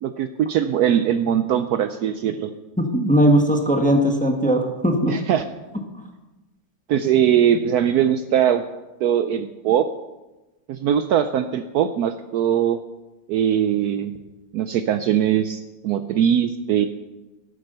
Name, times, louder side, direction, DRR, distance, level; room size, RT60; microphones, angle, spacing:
voice 1, 0.0-2.5 5.1-5.4 6.9-8.6 9.0-9.8 10.7-12.8 13.3-14.1 14.5-16.9, right 9 dB, 70° right, 10 dB, 1.0 m, -21 dB
voice 2, 2.8-5.1, equal, 5° left, 3 dB, 1.1 m, -18 dB
11.5 x 8.9 x 6.7 m, 1.1 s
omnidirectional pair, 1.9 m